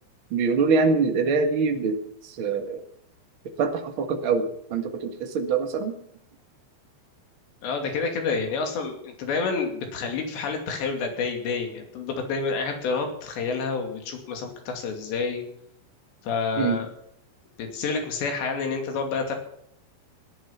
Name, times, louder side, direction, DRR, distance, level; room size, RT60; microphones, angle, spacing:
voice 1, 0.3-2.8 3.6-5.9 16.5-16.8, right 4 dB, 60° right, 4 dB, 1.3 m, -24 dB
voice 2, 7.6-15.5 16.2-16.9 17.6-19.4, left 4 dB, 75° left, 3 dB, 4.7 m, -29 dB
18.0 x 11.0 x 5.8 m, 0.70 s
omnidirectional pair, 5.1 m